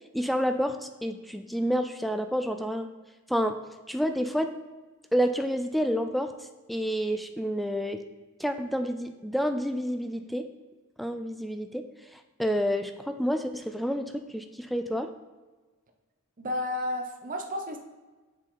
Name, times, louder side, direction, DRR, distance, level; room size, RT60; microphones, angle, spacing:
voice 1, 0.1-2.9 3.3-3.6 3.9-4.5 5.1-6.3 6.7-8.0 8.4-10.5 11.0-11.9 12.1-15.1, equal, ahead, 7 dB, 0.3 m, -29 dB
voice 2, 16.4-17.8, left 1 dB, 40° right, 4 dB, 0.7 m, -32 dB
7.2 x 4.2 x 3.8 m, 1.3 s
head